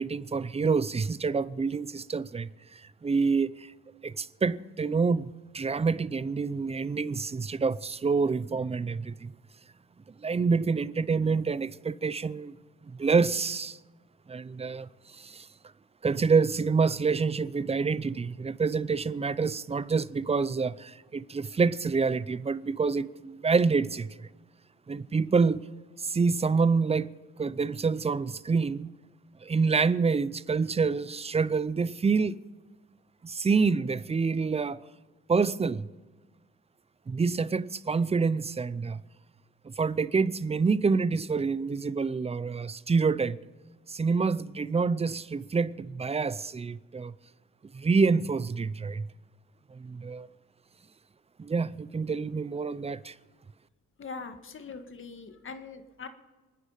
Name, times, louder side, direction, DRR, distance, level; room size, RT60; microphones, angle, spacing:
voice 1, 0.0-3.7 4.0-9.3 10.1-12.5 12.9-13.8 14.3-15.5 16.0-24.3 24.9-25.7 26.0-27.1 27.4-28.9 29.4-32.4 33.2-34.9 35.3-35.9 37.1-39.0 39.6-43.4 43.9-47.1 47.7-49.1 49.7-50.3 51.4-53.2, right 4 dB, 20° right, 0.6 m, -27 dB
voice 2, 54.0-56.1, left 4 dB, 40° left, 1.9 m, -42 dB
28.0 x 9.9 x 5.1 m
cardioid pair, 90°, 30 cm